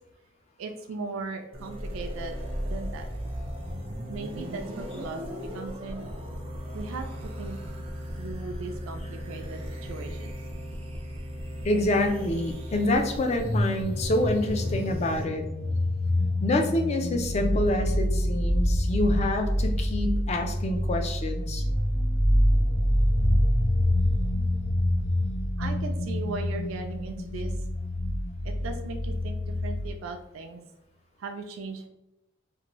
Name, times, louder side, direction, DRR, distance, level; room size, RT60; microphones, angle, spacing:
voice 1, 0.6-2.4 2.6-3.1 4.1-5.2 5.5-6.1 6.7-7.6 8.2-10.3 25.6-27.5 28.4-30.6 31.2-31.9, right 3 dB, 90° right, 5 dB, 0.4 m, -38 dB
sound 1, 1.5-15.2, equal, 25° right, 0.5 m, -37 dB
voice 2, 11.6-15.4 16.4-21.6, left 1 dB, 35° left, 5 dB, 0.3 m, -27 dB
sound 2, 13.4-29.9, left 1 dB, 65° left, 0.7 m, -26 dB
2.7 x 2.5 x 2.9 m, 0.88 s
head